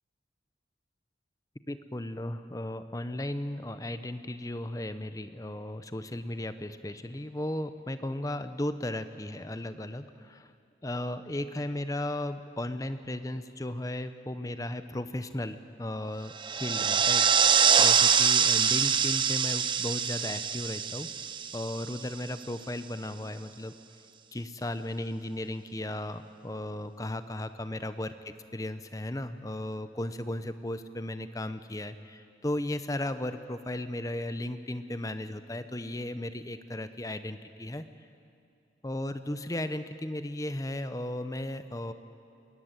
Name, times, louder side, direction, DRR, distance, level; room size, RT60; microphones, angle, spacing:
voice 1, 1.7-10.5 10.8-21.1 21.5-23.7 24.3-37.8 38.8-41.9, left 1 dB, 20° left, 11 dB, 0.7 m, -35 dB
sound 1, 16.4-22.2, right 7 dB, 25° right, 0.6 m, -24 dB
21.5 x 18.0 x 9.2 m, 2.5 s
head